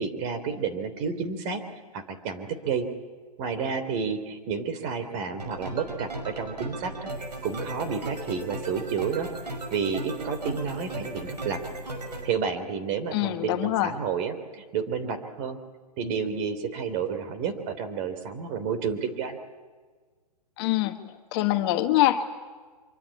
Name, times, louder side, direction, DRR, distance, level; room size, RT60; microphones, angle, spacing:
voice 1, 0.0-1.6 1.9-2.9 3.4-7.1 7.4-9.3 9.7-11.6 12.2-15.6 16.0-19.4, right 6 dB, 35° right, 9 dB, 3.2 m, -30 dB
sound 1, 5.4-12.3, right 1 dB, 85° right, 6.0 m, -36 dB
voice 2, 13.1-13.9 20.6-21.0 21.3-22.2, left 14 dB, 40° left, 7 dB, 1.5 m, -24 dB
25.0 x 24.5 x 8.5 m, 1.4 s
hypercardioid pair, 130°, 21 cm